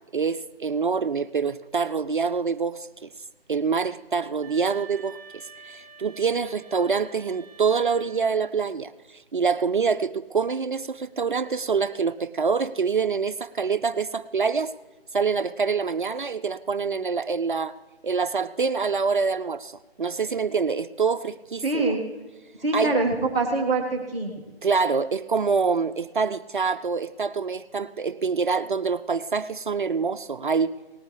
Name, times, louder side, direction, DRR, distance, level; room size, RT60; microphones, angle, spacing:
voice 1, 0.1-3.1 3.5-14.7 15.1-17.7 18.0-21.8 22.7-23.0 24.6-30.7, right 5 dB, 55° right, 11 dB, 0.5 m, -26 dB
sound 1, 4.4-8.6, right 5 dB, 20° right, 2.7 m, -48 dB
voice 2, 21.6-22.0 22.6-24.3, right 3 dB, 15° left, -6 dB, 2.1 m, -24 dB
18.5 x 13.5 x 3.2 m, 1.2 s
figure-of-eight pair, 155°, 31 cm